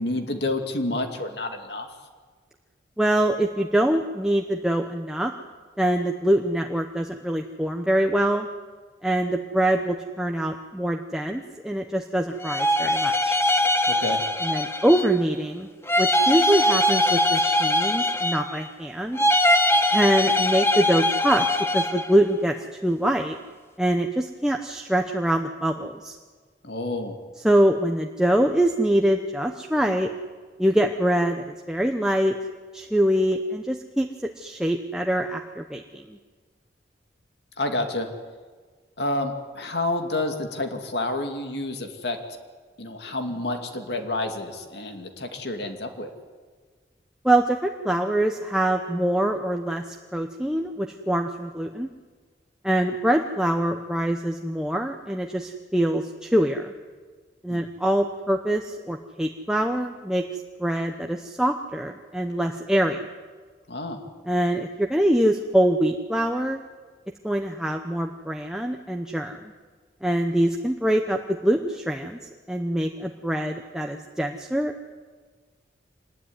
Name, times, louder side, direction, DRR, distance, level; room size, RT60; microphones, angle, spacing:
voice 1, 0.0-1.9 13.9-14.2 26.6-27.2 37.6-38.1 39.0-42.2 42.8-46.1 57.5-57.7 63.7-64.0, left 2 dB, 65° left, 5 dB, 2.5 m, -29 dB
voice 2, 3.0-5.3 5.8-8.5 9.0-13.4 14.4-15.7 16.0-19.2 19.9-21.5 21.7-22.6 22.8-23.4 23.8-26.2 27.4-30.1 30.6-32.4 32.7-34.1 34.4-36.2 47.2-51.9 52.6-56.7 57.4-63.1 64.3-66.6 67.2-69.5 70.0-74.9, right 1 dB, 5° right, 3 dB, 0.8 m, -24 dB
sound 1, 12.4-15.2 15.9-18.7 19.2-22.1, left 1 dB, 15° left, 1.3 m, -22 dB
25.0 x 20.5 x 9.6 m, 1.5 s
head